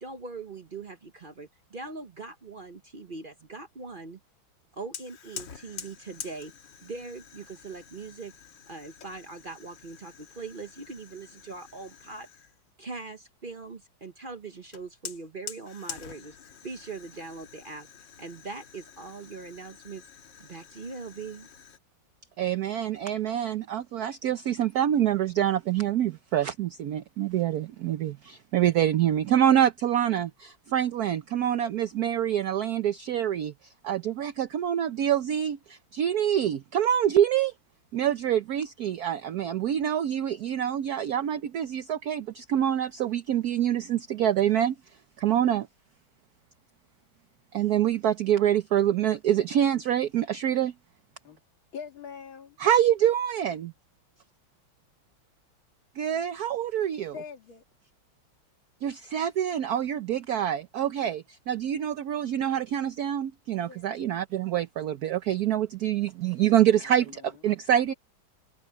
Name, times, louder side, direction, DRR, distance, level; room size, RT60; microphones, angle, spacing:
voice 1, 0.0-4.2 4.7-6.5 6.8-8.3 8.7-12.3 12.8-17.9 18.2-20.0 20.4-21.5, right 3 dB, 40° right, 0.8 m, -41 dB
Fire, 4.9-12.6 14.7-21.8, left 7 dB, 65° left, 2.2 m, -46 dB
voice 2, 22.4-33.5 33.8-37.5 37.9-44.8 45.2-45.7 47.5-50.7 52.6-53.7 56.0-57.1 58.8-67.9, right 10 dB, 60° right, 1.1 m, -26 dB
voice 3, 51.7-52.6 57.0-57.6 63.6-63.9 67.2-67.3 67.9-68.0, left 6 dB, 85° left, 2.9 m, -43 dB
omnidirectional pair, 2.1 m